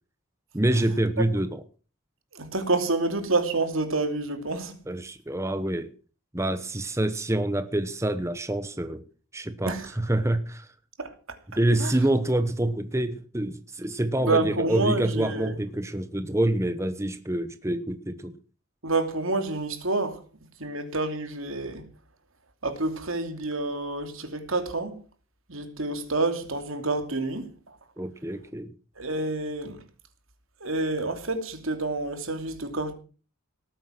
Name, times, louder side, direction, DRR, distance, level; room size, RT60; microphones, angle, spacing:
voice 1, 0.5-1.6 4.9-5.9 6.3-9.0 9.3-10.7 11.6-18.3 28.0-28.7, right 1 dB, 15° right, 0.9 m, -26 dB
voice 2, 2.3-4.8 9.6-9.9 11.0-11.4 11.8-11.9 14.2-15.6 18.8-20.2 20.6-21.9 22.6-25.0 25.5-27.8 29.0-29.8 30.6-32.9, right 2 dB, 70° right, 2.8 m, -28 dB
19.0 x 9.3 x 5.9 m
head